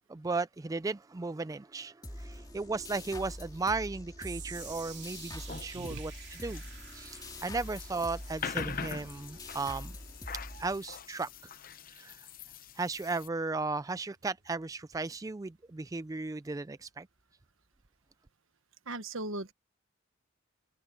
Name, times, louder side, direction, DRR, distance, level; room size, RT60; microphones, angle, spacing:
voice 1, 0.1-6.6 6.9-9.9 10.6-11.3 12.0-12.2 12.8-17.1, right 3 dB, 15° right, 0.3 m, -35 dB
sound 1, 2.0-11.3, left 1 dB, 20° left, 2.9 m, -45 dB
sound 2, 4.2-16.5 16.8-17.2 17.8-17.9, right 11 dB, 60° right, 2.5 m, -53 dB
sound 3, 4.5-13.3, left 7 dB, 45° left, 0.7 m, -44 dB
voice 2, 18.9-19.5, right 2 dB, 75° right, 1.3 m, -38 dB
head